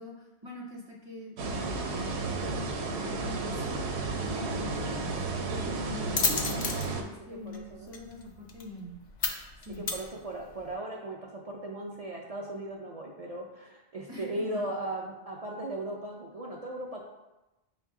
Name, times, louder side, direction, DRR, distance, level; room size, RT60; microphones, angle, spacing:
voice 1, 0.0-2.7 3.0-9.0 9.6-9.9 14.1-14.7, left 1 dB, 40° right, -3 dB, 0.8 m, -43 dB
sound 1, 1.4-7.0, right 3 dB, 75° right, 0.8 m, -33 dB
sound 2, 3.8-10.7, left 4 dB, 55° left, 0.4 m, -35 dB
voice 2, 7.3-7.9 9.8-17.0, right 1 dB, 60° right, -2 dB, 0.4 m, -37 dB
5.7 x 2.2 x 3.6 m, 1.0 s
omnidirectional pair, 1.1 m